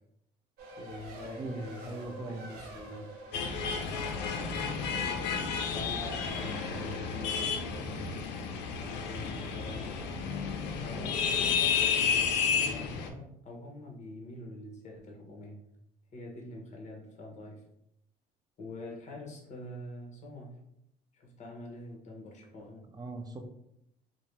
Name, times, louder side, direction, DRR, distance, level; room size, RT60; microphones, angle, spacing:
Race car auto racing, 0.6-7.3, right 2 dB, 75° right, 0.7 m, -47 dB
voice 1, 0.8-3.1 5.0-5.4 5.7-8.1 9.0-9.9 10.8-15.6 16.1-17.6 18.6-20.5 21.1-22.8, left 1 dB, 45° left, -1 dB, 0.9 m, -45 dB
voice 2, 1.3-2.5 22.9-23.4, right 2 dB, 25° right, 4 dB, 0.4 m, -40 dB
sound 1, 3.3-13.1, left 6 dB, 85° left, 0.4 m, -31 dB
2.7 x 2.0 x 3.2 m, 0.78 s
cardioid pair, 110°, 17 cm